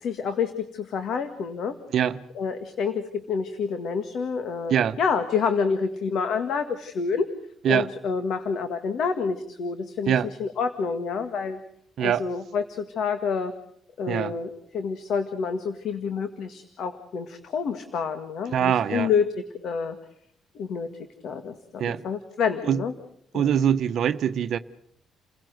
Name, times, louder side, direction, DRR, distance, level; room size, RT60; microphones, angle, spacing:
voice 1, 0.0-1.8 2.4-7.3 7.7-11.6 12.0-13.5 14.0-19.3 19.6-20.0 20.6-20.9 21.2-22.9 23.3-23.5, left 5 dB, 70° left, 1.8 m, -28 dB
voice 2, 18.5-19.1 21.8-22.0 22.7-22.8 23.3-24.6, right 9 dB, 70° right, 0.9 m, -23 dB
29.5 x 16.5 x 7.8 m
cardioid pair, 90°, 0 cm